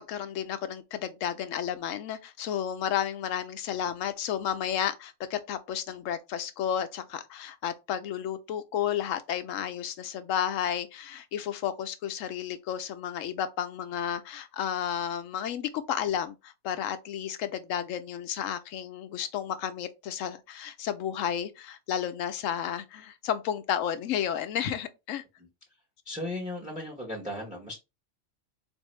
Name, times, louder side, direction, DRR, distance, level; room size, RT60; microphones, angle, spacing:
voice 1, 0.0-25.2, left 9 dB, 85° left, 1.0 m, -32 dB
voice 2, 26.1-27.7, left 1 dB, 5° right, 0.8 m, -36 dB
4.1 x 2.6 x 3.1 m
omnidirectional pair, 1.3 m